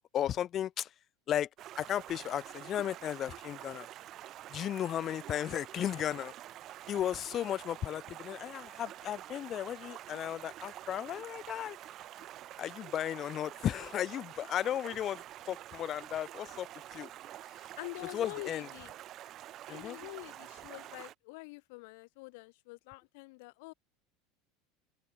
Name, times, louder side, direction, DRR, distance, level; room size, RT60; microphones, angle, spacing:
voice 1, 0.1-0.9 1.3-1.5 1.8-3.9 4.5-6.3 6.9-11.8 12.6-17.1 18.1-18.7 19.7-20.0, left 11 dB, 30° left, 0.8 m, -35 dB
Stream, 1.6-21.1, right 13 dB, 35° right, 1.4 m, -48 dB
voice 2, 17.8-18.9 19.7-23.7, left 27 dB, 65° left, 0.8 m, -46 dB
open air
supercardioid pair, 155°, 0 cm